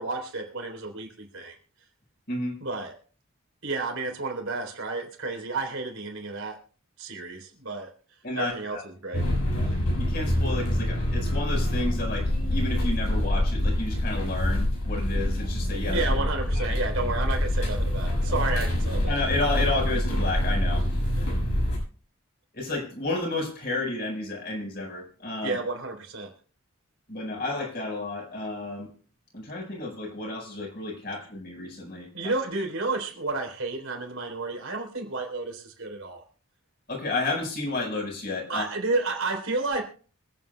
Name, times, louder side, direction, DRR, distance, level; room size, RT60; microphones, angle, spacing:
voice 1, 0.0-1.6 2.6-3.0 3.6-6.6 7.0-7.9 8.4-8.8 9.0-9.2 15.8-19.2 25.4-26.3 32.1-36.2 38.5-39.8, right 3 dB, 70° right, 2 dB, 3.8 m, -31 dB
voice 2, 2.3-2.6 8.2-8.8 9.9-16.0 16.5-16.6 19.1-21.0 22.5-25.6 27.1-28.9 29.3-32.1 36.9-38.6, left 2 dB, 45° left, 0 dB, 4.9 m, -31 dB
sound 1, 9.1-21.8, left 1 dB, 80° left, 7.3 m, -26 dB
26.0 x 9.3 x 2.3 m, 0.41 s
head